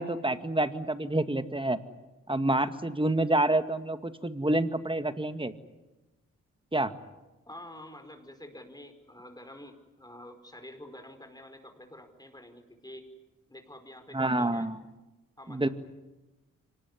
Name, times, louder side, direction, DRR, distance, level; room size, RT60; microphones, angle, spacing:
voice 1, 0.0-1.8 2.3-5.5 6.7-6.9 14.1-14.8 15.5-15.7, right 1 dB, 15° right, 10 dB, 2.0 m, -28 dB
voice 2, 7.5-13.1 13.5-14.7 15.4-15.7, left 1 dB, 10° left, 6 dB, 4.9 m, -48 dB
25.0 x 19.5 x 9.7 m, 1.1 s
supercardioid pair, 40°, 32 cm